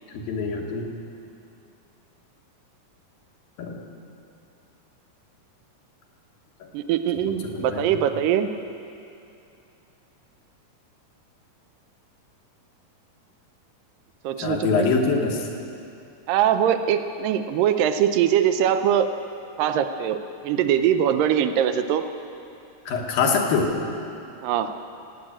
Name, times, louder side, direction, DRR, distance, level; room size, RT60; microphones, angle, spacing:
voice 1, 0.1-0.9 3.6-3.8 6.6-6.7 7.3-8.0 14.4-15.5 22.9-23.8, left 4 dB, 85° left, 1 dB, 3.3 m, -24 dB
voice 2, 6.7-8.5 14.2-14.9 16.3-19.1 19.6-20.2 20.4-22.1 24.4-24.7, right 9 dB, 80° right, 8 dB, 2.3 m, -22 dB
17.5 x 8.7 x 8.8 m, 2.7 s
omnidirectional pair, 4.0 m